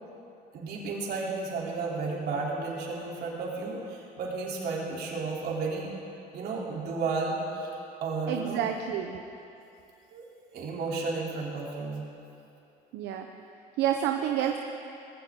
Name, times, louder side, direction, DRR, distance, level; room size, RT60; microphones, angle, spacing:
voice 1, 0.5-5.9 6.3-8.6 10.1-10.2 10.5-12.1, right 3 dB, 70° right, -3 dB, 3.4 m, -33 dB
voice 2, 8.3-9.2 12.9-13.3 13.8-14.6, right 10 dB, 90° right, 4 dB, 0.8 m, -28 dB
19.5 x 16.0 x 3.8 m, 2.7 s
cardioid pair, 110°, 17 cm